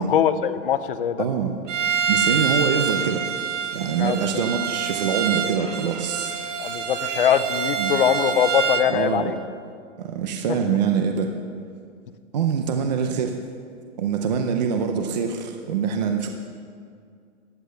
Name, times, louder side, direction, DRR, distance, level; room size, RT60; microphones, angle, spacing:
voice 1, 0.0-1.2 4.0-4.2 6.6-9.3 10.5-10.6, left 9 dB, 45° left, 12 dB, 0.6 m, -22 dB
voice 2, 1.2-1.5 2.1-3.3 3.7-6.4 7.8-7.9 8.9-9.3 10.0-11.3 12.3-13.4 14.0-16.3, right 6 dB, 35° right, 4 dB, 0.7 m, -24 dB
Bowed string instrument, 1.7-8.9, right 7 dB, 65° right, 1.6 m, -26 dB
15.0 x 9.8 x 6.9 m, 2.2 s
hypercardioid pair, 180°, 40 cm